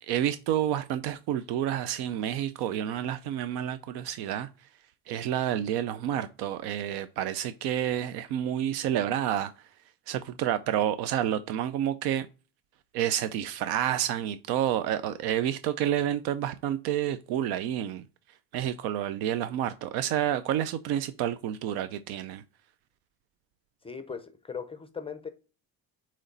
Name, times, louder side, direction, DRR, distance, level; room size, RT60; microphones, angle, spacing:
voice 1, 0.1-4.5 5.1-9.5 10.1-12.3 12.9-18.0 18.5-22.4, right 11 dB, 90° right, 0.6 m, -29 dB
voice 2, 23.8-25.3, left 6 dB, 15° left, 0.5 m, -38 dB
8.0 x 3.2 x 3.9 m
cardioid pair, 140°, 38 cm